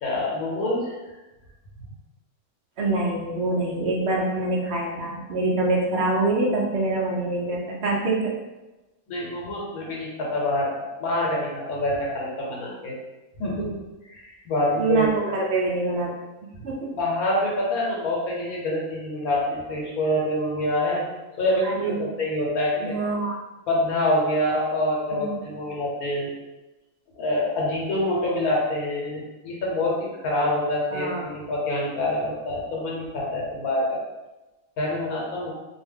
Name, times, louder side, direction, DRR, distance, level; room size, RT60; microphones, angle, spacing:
voice 1, 0.0-0.9 9.1-10.7 11.0-12.9 13.4-13.7 14.0-15.0 17.0-21.0 21.4-22.9 23.7-26.3 27.2-29.9 30.2-34.0 34.8-35.5, left 1 dB, 80° left, -3 dB, 1.2 m, -26 dB
voice 2, 2.8-8.3 14.8-16.2 16.4-17.0 21.6-22.0 22.8-23.3 25.1-25.5 30.9-31.3, right 2 dB, 60° right, -2 dB, 0.7 m, -25 dB
2.6 x 2.2 x 3.3 m, 1.1 s
omnidirectional pair, 1.5 m